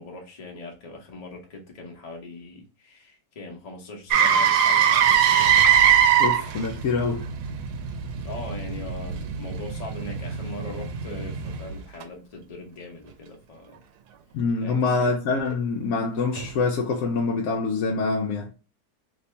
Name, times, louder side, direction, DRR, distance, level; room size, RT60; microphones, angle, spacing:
voice 1, 0.0-5.5 8.2-13.8 14.6-15.1, left 2 dB, 30° left, 0.8 m, -40 dB
Motor vehicle (road), 4.1-12.0 16.4-16.5, right 8 dB, 85° right, 1.2 m, -22 dB
voice 2, 6.2-7.3 14.3-18.5, left 4 dB, 70° left, 1.0 m, -25 dB
3.0 x 2.7 x 3.2 m
omnidirectional pair, 1.7 m